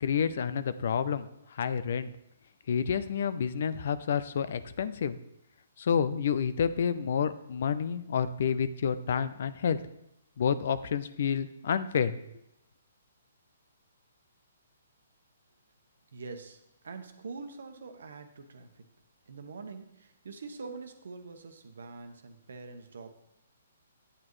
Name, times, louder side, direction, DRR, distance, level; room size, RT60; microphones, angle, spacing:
voice 1, 0.0-1.3 1.6-2.1 2.7-5.2 5.8-9.8 10.4-12.1, left 7 dB, 60° left, 13 dB, 0.5 m, -29 dB
voice 2, 16.1-18.8 19.3-23.1, right 4 dB, 70° right, 7 dB, 1.1 m, -44 dB
8.9 x 8.5 x 3.2 m, 0.81 s
hypercardioid pair, 135°, 0 cm